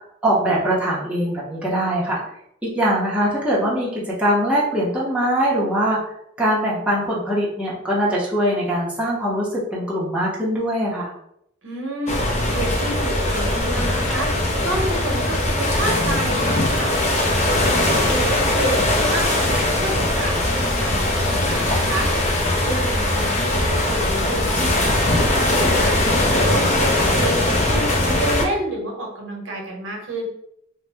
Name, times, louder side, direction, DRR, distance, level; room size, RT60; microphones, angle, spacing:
voice 1, 0.2-2.2 2.6-6.1 6.4-11.1, equal, 5° right, -7 dB, 0.6 m, -22 dB
voice 2, 11.6-12.2 12.5-14.3 14.6-16.9 17.3-22.1 22.6-25.9 26.3-30.3, right 1 dB, 75° right, -1 dB, 0.8 m, -29 dB
sound 1, 12.1-28.4, left 1 dB, 35° left, 0.5 m, -20 dB
2.7 x 2.1 x 3.3 m, 0.75 s
head